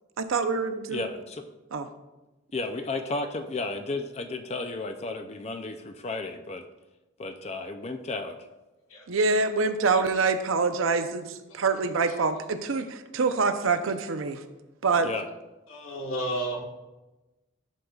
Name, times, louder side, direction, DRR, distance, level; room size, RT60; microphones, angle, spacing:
voice 1, 0.2-1.0 1.7-1.9 9.1-14.4 14.8-15.1, right 4 dB, 75° right, 9 dB, 0.6 m, -25 dB
voice 2, 0.9-1.5 2.5-6.7 7.2-8.4 15.0-15.3, left 3 dB, 30° left, 7 dB, 0.4 m, -33 dB
voice 3, 15.7-16.6, right 1 dB, 85° left, 0 dB, 1.5 m, -32 dB
11.0 x 6.5 x 2.3 m, 1.1 s
head